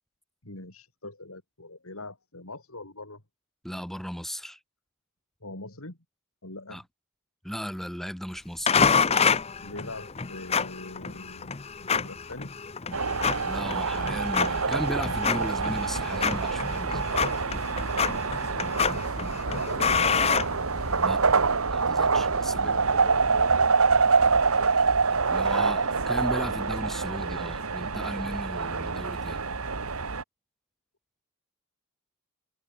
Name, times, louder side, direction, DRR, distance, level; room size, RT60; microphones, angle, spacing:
voice 1, 0.4-3.2 5.4-6.0 6.4-6.8 9.6-12.5 19.4-20.0 22.5-23.6, left 2 dB, 85° left, 4.9 m, -42 dB
voice 2, 3.6-4.6 6.7-6.8 7.4-8.8 13.4-17.2 21.0-21.5 21.7-22.7 25.3-29.4, equal, ahead, 1.1 m, -36 dB
sound 1, 8.7-21.2, left 6 dB, 30° left, 0.7 m, -28 dB
sound 2, 12.9-30.2, right 4 dB, 90° right, 1.6 m, -26 dB
head